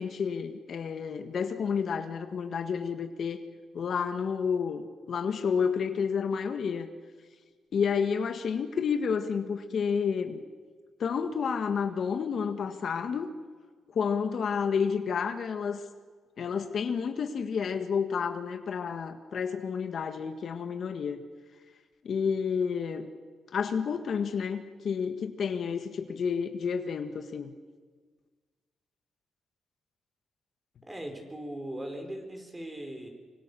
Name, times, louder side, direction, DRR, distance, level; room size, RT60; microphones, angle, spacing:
voice 1, 0.0-3.4 3.7-6.9 7.7-10.4 11.0-13.3 13.9-15.8 16.4-21.2 22.0-23.1 23.5-27.5, left 6 dB, 55° left, 8 dB, 1.6 m, -30 dB
voice 2, 30.8-33.1, right 1 dB, 15° right, 4 dB, 4.8 m, -39 dB
25.0 x 25.0 x 6.9 m, 1.5 s
cardioid pair, 105°, 0 cm